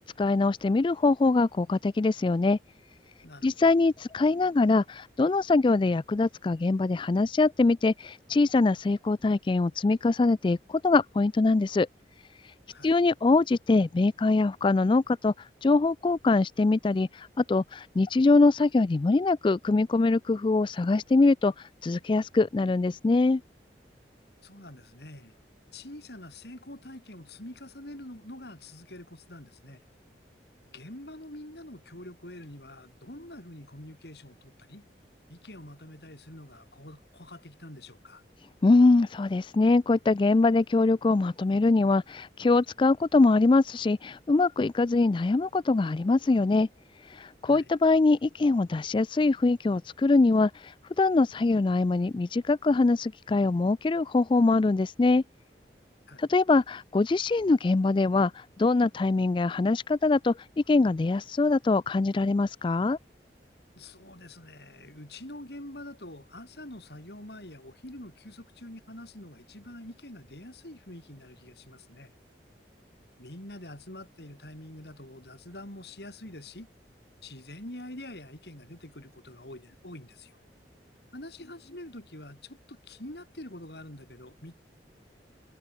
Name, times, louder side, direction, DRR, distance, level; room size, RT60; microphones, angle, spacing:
voice 1, 0.0-2.6 3.4-11.9 12.8-15.3 15.6-23.4 38.6-46.7 47.1-55.2 56.2-63.0, left 3 dB, 30° left, 0.3 m, -23 dB
voice 2, 3.2-3.7 12.7-13.0 24.4-25.4 25.7-29.8 30.7-34.9 35.3-38.2 47.5-47.7 56.1-56.2 63.8-72.1 73.2-76.7 77.2-80.3 81.1-84.6, left 1 dB, 65° left, 5.3 m, -45 dB
head